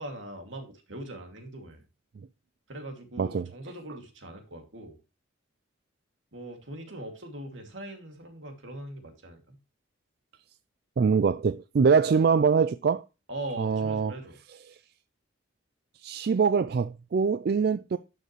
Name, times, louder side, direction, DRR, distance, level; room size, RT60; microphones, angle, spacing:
voice 1, 0.0-1.8 2.7-5.0 6.3-9.6 13.3-14.4, right 1 dB, 75° right, 2.4 m, -41 dB
voice 2, 11.0-13.0 13.6-14.1 14.7-14.8 16.0-18.0, right 5 dB, 50° right, 0.3 m, -24 dB
11.5 x 6.6 x 3.1 m
head